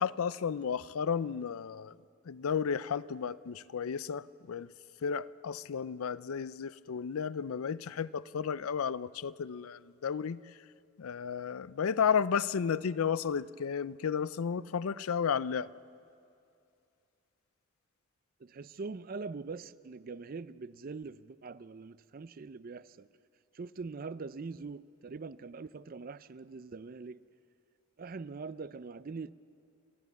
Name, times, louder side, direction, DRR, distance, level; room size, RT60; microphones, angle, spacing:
voice 1, 0.0-1.9 2.3-4.7 5.0-10.4 11.0-15.7, left 7 dB, 80° left, 0.4 m, -33 dB
voice 2, 18.4-23.1 23.5-27.2 28.0-29.3, right 4 dB, 40° right, 0.4 m, -43 dB
28.0 x 13.0 x 8.2 m
head